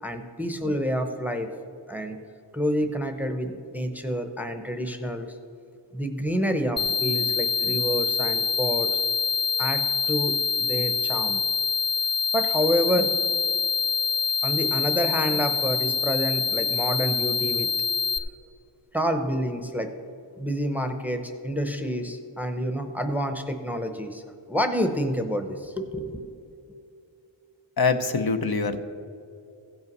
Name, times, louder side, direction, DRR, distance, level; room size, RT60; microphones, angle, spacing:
voice 1, 0.0-1.5 1.9-2.2 2.5-5.3 5.9-9.0 9.6-11.4 12.3-13.1 14.4-17.7 18.9-19.9 20.3-26.3, equal, 5° right, 6 dB, 0.8 m, -28 dB
sound 1, 6.8-18.2, left 6 dB, 10° left, 0.4 m, -25 dB
voice 2, 27.8-28.8, left 4 dB, 50° left, 8 dB, 0.8 m, -24 dB
15.5 x 5.6 x 5.4 m, 2.5 s
wide cardioid pair, 85°, 47 cm